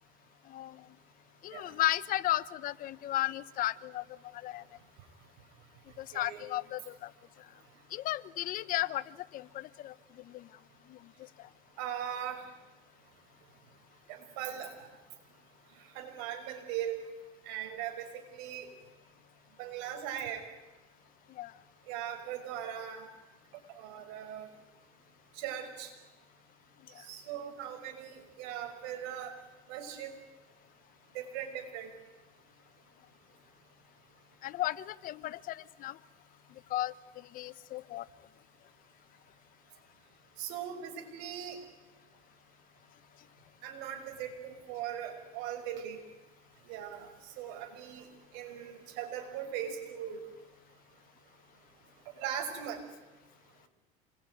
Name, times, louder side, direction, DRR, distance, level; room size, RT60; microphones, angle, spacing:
voice 1, 0.5-0.8 1.4-4.0 4.3-4.6 6.0-7.1 7.9-10.5 10.9-11.0 21.4-21.5 34.4-36.0 36.7-36.9 37.3-38.1, left 14 dB, 50° left, 18 dB, 0.9 m, -34 dB
voice 2, 6.1-6.4 11.8-12.4 14.1-14.9 15.9-17.0 17.5-18.7 19.6-20.4 21.9-23.1 23.7-24.5 25.4-25.9 27.0-29.3 29.7-30.1 31.1-31.9 40.4-41.6 43.6-46.0 46.7-47.1 47.4-48.1 48.3-50.2 52.2-52.8, right 9 dB, 70° right, 6 dB, 6.1 m, -39 dB
27.5 x 21.5 x 9.4 m, 1.1 s
supercardioid pair, 115°, 18 cm